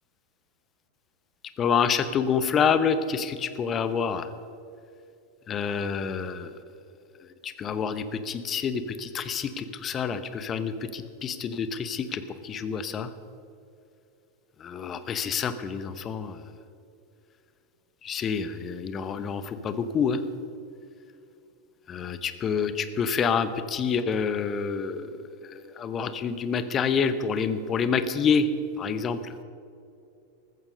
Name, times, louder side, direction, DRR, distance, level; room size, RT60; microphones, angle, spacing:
voice 1, 1.6-4.3 5.5-6.5 7.4-13.1 14.6-16.4 18.0-20.2 21.9-25.0 25.8-28.5 28.8-29.2, left 6 dB, 25° left, 12 dB, 1.0 m, -27 dB
14.5 x 14.0 x 5.3 m, 2.6 s
figure-of-eight pair, 90°, 0 cm